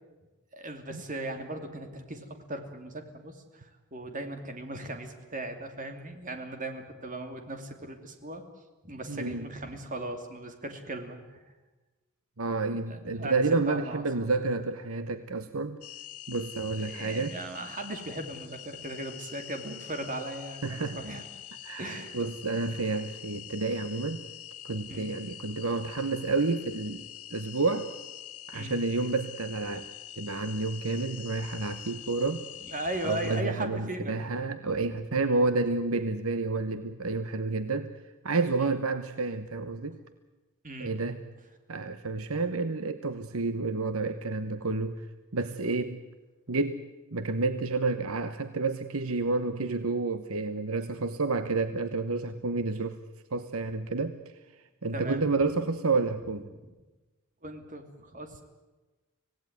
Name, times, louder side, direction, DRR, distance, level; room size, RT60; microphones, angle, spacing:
voice 1, 0.5-8.4 8.8-11.4 12.9-14.3 16.8-21.3 21.8-22.2 24.9-25.1 28.5-28.8 32.6-34.3 35.2-35.4 38.6-38.7 40.6-40.9 54.9-55.3 57.4-58.4, right 1 dB, 35° right, 6 dB, 2.9 m, -38 dB
voice 2, 9.1-9.5 12.4-15.8 16.3-17.3 20.6-21.0 21.6-24.2 24.6-27.1 27.3-27.9 28.5-29.9 30.2-32.4 33.0-37.9 38.2-40.0 40.8-41.2 41.7-45.0 45.3-46.0 46.5-53.0 53.3-54.2 54.8-56.5, right 3 dB, 70° right, 11 dB, 1.1 m, -30 dB
sound 1, 15.8-33.4, left 11 dB, 85° left, 1.3 m, -45 dB
25.5 x 17.5 x 9.5 m, 1.2 s
head